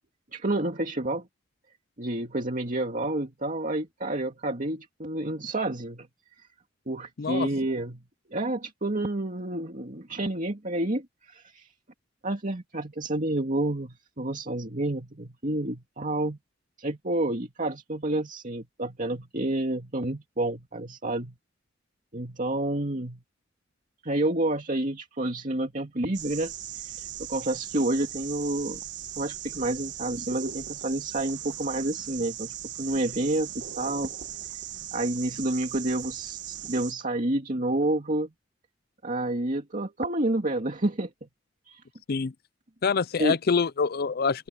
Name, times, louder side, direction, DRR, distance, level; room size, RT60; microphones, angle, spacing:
voice 1, 0.3-1.3 2.0-6.1 6.4-6.5 6.9-8.0 8.3-11.7 12.2-16.4 16.8-21.4 22.1-23.2 24.0-26.5 27.2-28.8 29.2-34.1 34.9-38.3 39.0-41.1 41.7-41.8 43.2-43.4, right 1 dB, 40° right, 2.3 m, -29 dB
sound 1, 26.1-36.9, right 11 dB, 60° right, 1.6 m, -38 dB
voice 2, 42.8-44.5, left 5 dB, 50° left, 0.5 m, -25 dB
open air
head